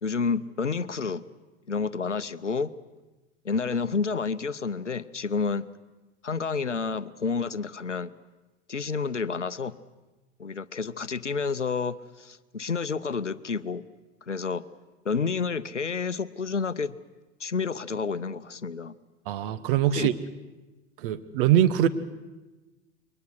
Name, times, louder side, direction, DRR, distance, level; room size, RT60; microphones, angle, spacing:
voice 1, 0.0-1.2 1.7-2.7 3.4-5.7 6.2-8.1 8.7-9.8 10.4-13.8 14.3-14.6 15.0-17.0 17.4-18.9 19.9-20.1, left 5 dB, 85° left, 16 dB, 0.7 m, -29 dB
voice 2, 19.3-20.1 21.0-21.9, right 11 dB, 50° right, 12 dB, 1.2 m, -22 dB
28.0 x 23.0 x 6.4 m, 1.1 s
figure-of-eight pair, 90°, 35 cm